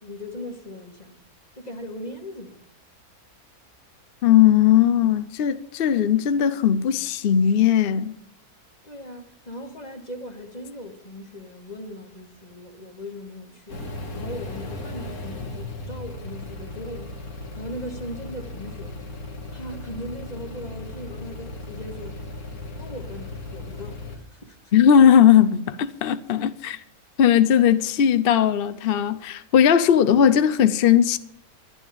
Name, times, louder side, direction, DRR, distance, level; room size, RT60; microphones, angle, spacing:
voice 1, 0.0-1.2 1.6-2.6 8.8-13.8 14.1-19.0 19.5-22.2 22.8-24.8, left 1 dB, 25° left, 2.1 m, -39 dB
voice 2, 4.2-8.2 24.7-26.8 27.2-31.2, left 9 dB, 55° left, 0.7 m, -18 dB
sound 1, 13.7-24.2, left 2 dB, 75° left, 2.4 m, -36 dB
11.5 x 11.5 x 7.0 m
omnidirectional pair, 1.5 m